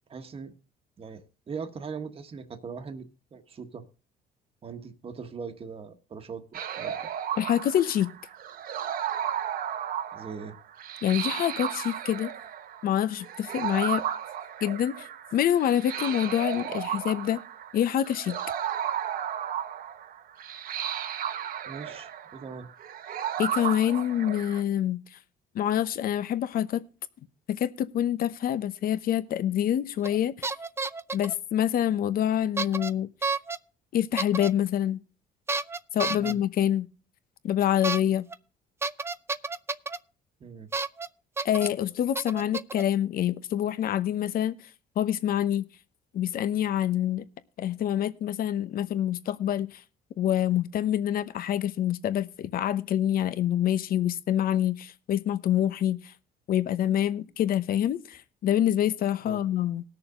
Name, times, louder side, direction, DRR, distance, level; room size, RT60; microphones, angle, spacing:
voice 1, 0.1-0.5 1.0-3.0 3.3-3.8 4.6-7.0 10.1-10.6 21.6-22.7 36.1-36.4 40.4-40.7 59.2-59.4, right 5 dB, 35° right, 1.4 m, -40 dB
sound 1, 6.5-24.6, right 9 dB, 60° right, 1.1 m, -34 dB
voice 2, 7.4-8.1 11.0-12.3 12.8-14.0 14.6-17.4 17.7-18.4 23.4-25.0 25.5-26.8 27.5-30.5 31.1-33.1 33.9-35.0 35.9-36.9 37.4-38.3 41.4-44.6 45.0-45.7 46.1-47.2 47.6-49.8 50.2-56.0 56.5-59.8, left 11 dB, 60° left, 1.0 m, -26 dB
sound 2, 30.0-30.2 30.4-31.3 32.6-32.9 33.2-33.6 34.2-34.5 35.5-36.3 37.8-38.0 38.3-38.4 38.8-40.0 40.7-41.1 41.4-41.7 42.1-42.8, right 3 dB, 15° right, 0.5 m, -30 dB
19.5 x 6.8 x 3.7 m
cardioid pair, 110°, 17 cm